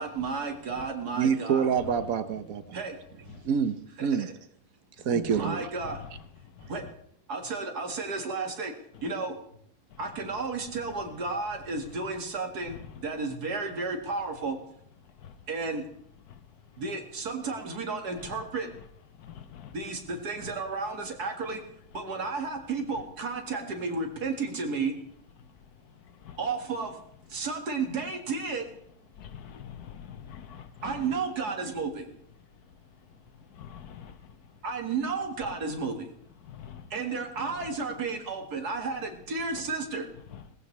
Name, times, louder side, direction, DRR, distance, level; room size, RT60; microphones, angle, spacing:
voice 1, 0.0-1.7 2.7-2.9 4.0-4.1 5.4-6.0 6.7-6.8 7.3-8.7 9.0-9.3 10.0-12.8 13.0-14.6 15.5-15.8 16.8-18.7 19.7-21.6 21.9-24.9 26.4-26.9 27.3-28.6 30.8-32.0 34.6-36.0 36.9-40.1, right 4 dB, 85° right, 2.4 m, -32 dB
voice 2, 1.2-2.8 3.4-4.3 5.0-5.7, right 7 dB, 65° right, 1.3 m, -27 dB
voice 3, 19.2-19.7 26.2-26.4 29.2-30.8 33.5-34.2 36.4-36.9 40.3-40.4, left 9 dB, 85° left, 1.5 m, -45 dB
19.0 x 15.0 x 3.3 m
omnidirectional pair, 1.6 m